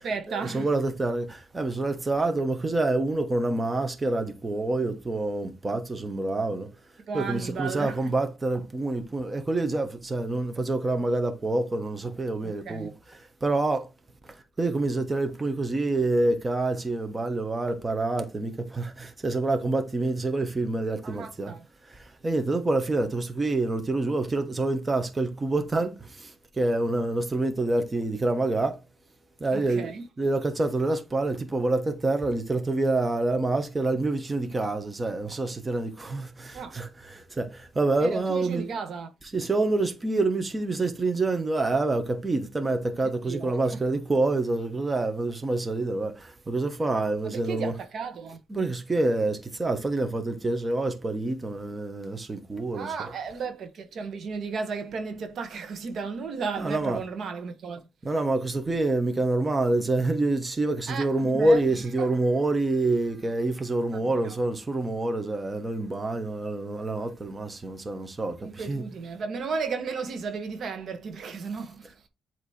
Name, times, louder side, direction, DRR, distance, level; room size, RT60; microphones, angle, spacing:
voice 1, 0.0-0.7 7.1-8.1 12.4-12.9 21.0-21.7 29.5-30.0 36.5-36.7 38.0-39.1 43.0-43.8 47.2-48.4 52.7-57.8 60.9-61.6 62.0-62.1 63.9-64.4 68.4-72.1, right 5 dB, 60° right, 1.2 m, -34 dB
voice 2, 0.5-6.7 7.1-12.9 13.4-13.9 14.6-21.5 22.2-26.3 26.6-28.8 29.4-29.9 30.2-38.6 39.3-47.7 48.5-52.9 56.6-57.0 58.0-68.4 68.7-68.8, right 2 dB, 25° right, 1.2 m, -27 dB
8.0 x 3.1 x 4.3 m
cardioid pair, 90°, 0 cm